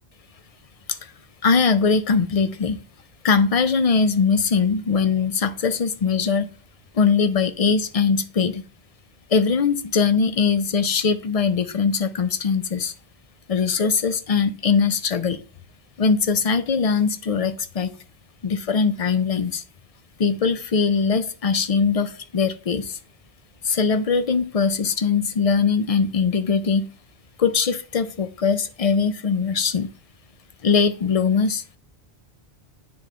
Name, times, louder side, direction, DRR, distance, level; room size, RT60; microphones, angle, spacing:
voice 1, 1.4-2.8 3.2-6.5 6.9-8.6 9.3-12.9 13.5-15.4 16.0-17.9 18.4-19.6 20.2-23.0 23.6-26.9 27.4-29.9 30.6-31.8, left 5 dB, 50° left, 12 dB, 0.5 m, -21 dB
9.6 x 3.4 x 3.7 m, 0.38 s
omnidirectional pair, 1.1 m